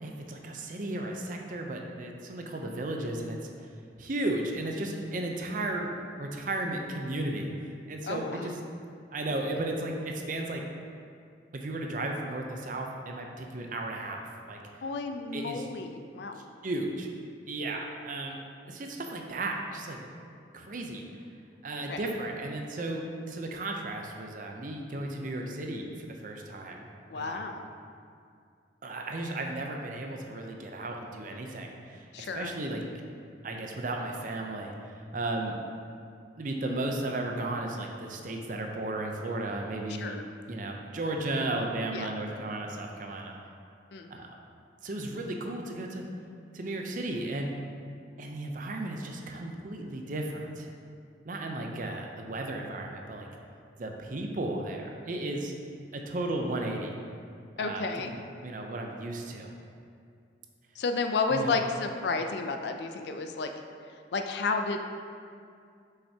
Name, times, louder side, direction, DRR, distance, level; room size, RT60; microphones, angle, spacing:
voice 1, 0.0-3.7 4.0-5.9 6.2-8.6 9.1-10.6 11.5-14.6 15.3-15.7 16.6-17.1 17.5-18.4 18.7-20.0 20.5-21.0 21.6-26.9 27.1-27.5 28.8-32.8 33.4-35.6 36.4-40.2 40.5-43.4 44.1-44.3 44.8-46.0 46.5-47.5 48.2-50.7 51.2-53.3 53.8-55.5 55.9-56.9 57.6-57.9 58.4-59.5 61.3-61.6, right 2 dB, 45° right, 2 dB, 0.6 m, -34 dB
voice 2, 8.1-8.5 14.8-16.4 21.9-22.0 27.1-27.7 32.1-32.5 40.0-40.2 41.9-42.1 43.9-44.1 57.6-58.1 60.8-63.5 64.1-64.8, left 4 dB, 65° left, 5 dB, 0.4 m, -31 dB
6.7 x 5.6 x 2.8 m, 2.3 s
head